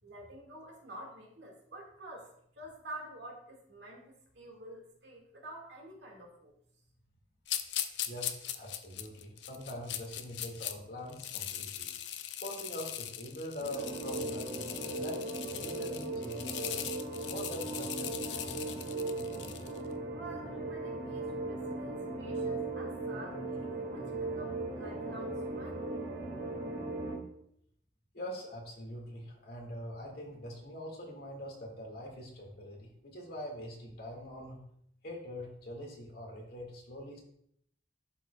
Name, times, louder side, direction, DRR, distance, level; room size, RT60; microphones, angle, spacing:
voice 1, 0.0-6.5 20.1-25.9, right 1 dB, 80° right, -1 dB, 1.9 m, -49 dB
sound 1, 7.5-10.7 11.1-19.8, left 11 dB, 80° left, 0.5 m, -40 dB
voice 2, 8.1-11.9 12.4-15.2 15.5-16.8 17.2-18.5 28.1-34.6 35.0-37.2, left 1 dB, 60° left, 0 dB, 1.9 m, -43 dB
sound 2, 13.6-27.2, right 2 dB, 65° right, 2.0 m, -38 dB
11.0 x 5.0 x 2.3 m, 0.71 s
head